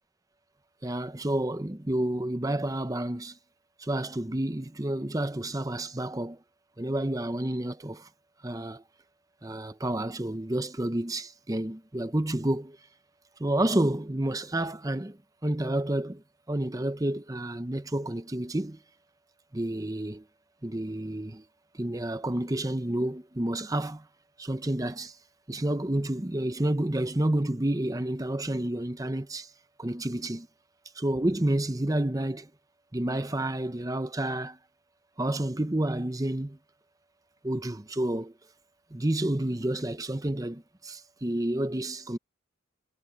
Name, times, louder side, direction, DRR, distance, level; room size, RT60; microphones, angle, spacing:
voice 1, 0.8-3.4 3.8-6.4 6.8-8.1 8.4-8.8 9.4-12.8 13.4-18.8 19.5-20.2 20.6-21.4 21.7-24.1 24.4-25.2 25.5-29.5 29.8-30.5 30.9-32.5 32.9-34.6 35.2-36.6 37.4-38.3 38.9-42.2, right 1 dB, 15° right, 0.7 m, -30 dB
head